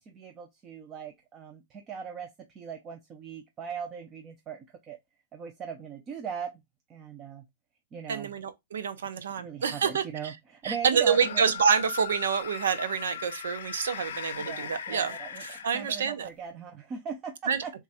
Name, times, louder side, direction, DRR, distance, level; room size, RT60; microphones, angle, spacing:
voice 1, 0.0-2.3 2.6-5.0 5.3-6.6 6.9-7.4 7.9-8.3 9.1-11.4 14.4-15.4 15.7-17.7, right 7 dB, 25° right, 0.5 m, -39 dB
voice 2, 8.1-10.4 10.6-15.2 15.4-16.3 17.5-17.6, right 6 dB, 90° right, 0.7 m, -27 dB
sound 1, 11.0-16.3, left 8 dB, 75° left, 0.6 m, -39 dB
3.5 x 2.3 x 4.1 m
hypercardioid pair, 145°, 0 cm